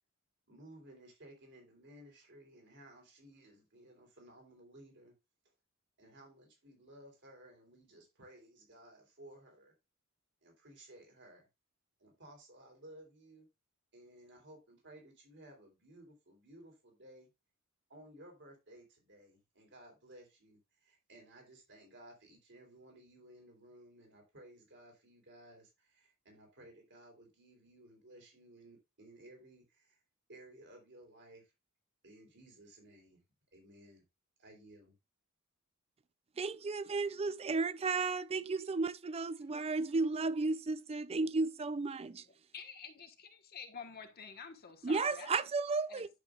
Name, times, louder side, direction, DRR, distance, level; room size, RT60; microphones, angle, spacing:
voice 1, 0.5-5.2 6.0-9.7 10.4-11.5 12.0-13.5 13.9-17.3 17.9-30.0 30.3-31.5 32.0-33.2 33.5-34.0 34.4-35.0, right 1 dB, 55° right, 3.6 m, -57 dB
voice 2, 36.4-42.2 44.8-46.1, right 3 dB, 30° right, 0.4 m, -34 dB
voice 3, 42.5-45.3 45.9-46.1, left 5 dB, 45° left, 1.3 m, -49 dB
10.5 x 6.7 x 2.4 m
head